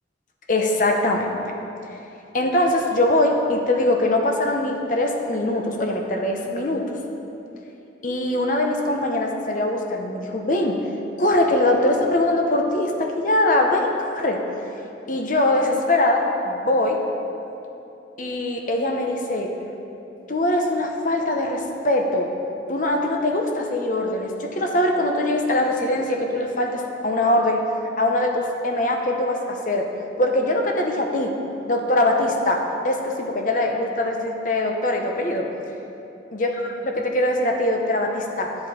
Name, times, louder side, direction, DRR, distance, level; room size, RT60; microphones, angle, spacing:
voice 1, 0.5-1.5 2.3-7.0 8.0-10.8 11.2-14.4 15.1-17.0 18.2-19.5 20.3-22.3 22.7-27.6 28.0-29.9 30.2-31.4 31.7-35.5 36.3-38.5, left 1 dB, 45° left, 2 dB, 0.8 m, -22 dB
11.5 x 7.8 x 4.2 m, 2.9 s
head